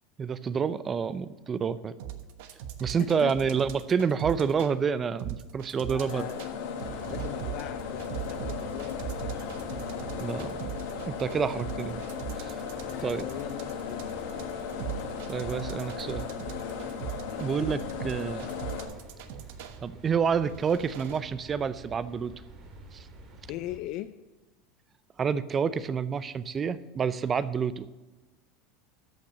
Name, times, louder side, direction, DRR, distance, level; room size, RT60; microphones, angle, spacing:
voice 1, 0.2-1.9 2.8-6.3 10.2-10.7 11.1-12.0 12.4-12.6 13.0-13.2 15.3-16.3 17.4-18.5 19.8-22.3 22.9-23.1 25.2-27.9, right 6 dB, 25° right, 15 dB, 0.5 m, -28 dB
sound 1, 2.0-4.7 5.2-6.5 6.8-19.8 20.4-21.2, right 11 dB, 75° right, 1.1 m, -39 dB
voice 2, 2.8-3.3 5.8-6.4 7.1-9.7 12.9-14.2 17.2-17.7 18.3-18.4 23.5-24.1, left 15 dB, 55° left, 11 dB, 0.4 m, -40 dB
sound 2, 6.0-18.8, left 6 dB, 85° left, 1.9 m, -36 dB
sound 3, 6.9-23.8, right 2 dB, 40° right, 2.4 m, -48 dB
13.0 x 5.9 x 7.5 m, 1.1 s
supercardioid pair, 135°, 0 cm